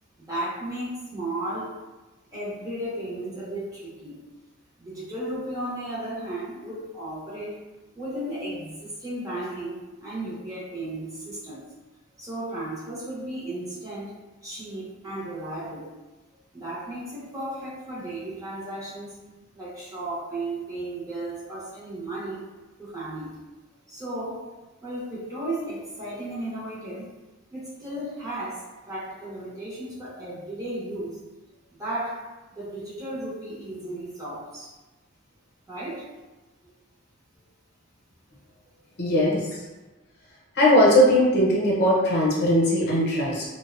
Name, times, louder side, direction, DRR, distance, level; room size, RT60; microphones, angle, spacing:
voice 1, 0.3-1.7 2.3-4.2 4.8-7.5 8.0-11.6 12.2-14.1 14.4-15.8 16.5-19.2 19.5-22.5 22.8-23.3 23.9-24.5 24.8-27.1 27.5-28.6 28.9-31.2 31.8-32.2 32.6-34.7 35.7-36.1, right 1 dB, 15° right, -8 dB, 0.6 m, -34 dB
voice 2, 39.0-39.4 40.6-43.4, equal, 55° left, -5 dB, 0.7 m, -19 dB
2.5 x 2.0 x 2.4 m, 1.1 s
head